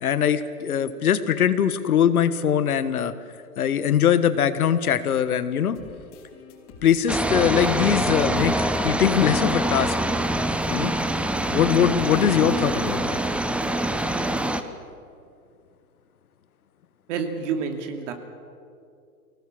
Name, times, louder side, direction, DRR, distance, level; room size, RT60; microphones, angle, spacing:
voice 1, 0.0-3.1 3.6-5.8 6.8-10.0 10.7-10.9 11.5-13.2, left 9 dB, 70° left, 12 dB, 1.4 m, -22 dB
sound 1, 5.7-14.7, left 5 dB, 35° left, 5.0 m, -47 dB
sound 2, 7.1-14.6, right 1 dB, 5° right, 0.7 m, -25 dB
voice 2, 17.1-18.1, right 6 dB, 50° right, 5 dB, 3.0 m, -28 dB
24.0 x 18.0 x 7.6 m, 2.4 s
hypercardioid pair, 110°, 45 cm